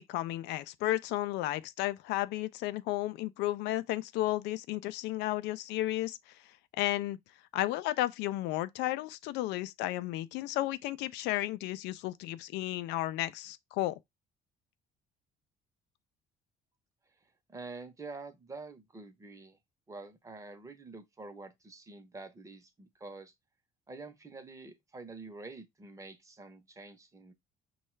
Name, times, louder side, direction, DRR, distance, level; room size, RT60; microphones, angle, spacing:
voice 1, 0.0-6.2 6.8-7.2 7.5-14.0, left 15 dB, 90° left, 0.4 m, -33 dB
voice 2, 17.5-19.6 19.9-23.3 23.9-27.3, right 3 dB, 20° right, 0.8 m, -47 dB
5.4 x 2.4 x 3.1 m
cardioid pair, 110°, 17 cm